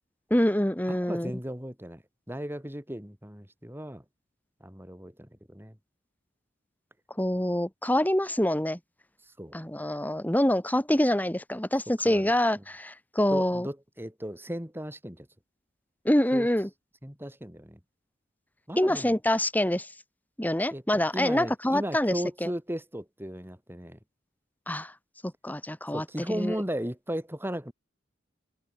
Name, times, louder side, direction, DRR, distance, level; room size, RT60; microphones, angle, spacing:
voice 1, 0.3-1.3 7.2-8.8 9.5-13.7 16.1-16.7 18.8-19.9 20.4-22.1 22.4-22.5 24.7-24.9 25.2-26.6, left 1 dB, 10° left, 1.9 m, -26 dB
voice 2, 0.9-2.0 2.3-4.0 4.6-5.8 9.4-9.6 12.0-12.3 13.3-15.3 16.3-16.5 17.0-17.8 18.7-19.1 20.7-20.8 21.1-24.0 25.9-27.7, equal, 10° right, 6.2 m, -36 dB
head